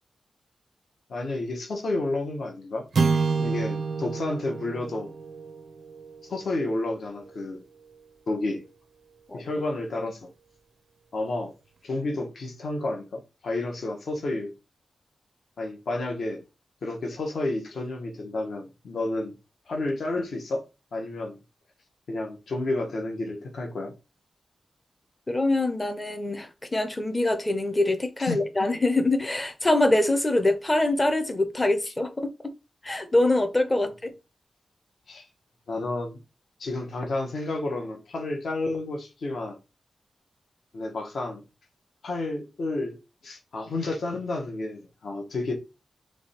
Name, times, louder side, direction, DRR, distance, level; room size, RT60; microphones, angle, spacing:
voice 1, 1.1-2.9 3.4-5.1 6.2-7.6 8.3-8.7 9.3-10.3 11.1-11.5 11.8-14.5 15.6-16.4 16.8-19.3 19.7-20.6 20.9-21.4 22.1-23.9 28.2-28.4 35.1-35.2 35.7-36.2 36.6-39.6 40.7-41.4 42.0-43.0 43.2-45.5, left 2 dB, 65° left, 0.9 m, -31 dB
sound 1, 2.9-7.4, right 4 dB, 55° right, 0.4 m, -29 dB
voice 2, 25.3-32.5 32.8-34.1, left 2 dB, 20° left, 0.6 m, -24 dB
3.4 x 3.1 x 4.2 m
wide cardioid pair, 180°, 0 cm